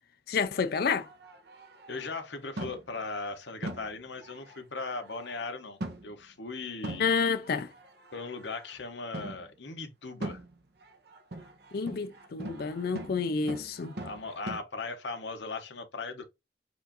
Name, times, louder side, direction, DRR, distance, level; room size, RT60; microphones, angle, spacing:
voice 1, 0.3-1.1 7.0-7.7 11.7-14.0, left 5 dB, 60° left, 0.5 m, -29 dB
sound 1, 0.7-2.2 2.6-3.1 3.6-5.5 5.8-6.2 6.8-8.8 9.1-9.5 10.2-14.6, right 1 dB, 65° right, 0.9 m, -42 dB
voice 2, 1.9-7.1 8.1-10.4 14.0-16.2, left 3 dB, 80° left, 1.0 m, -38 dB
4.8 x 2.6 x 4.0 m
head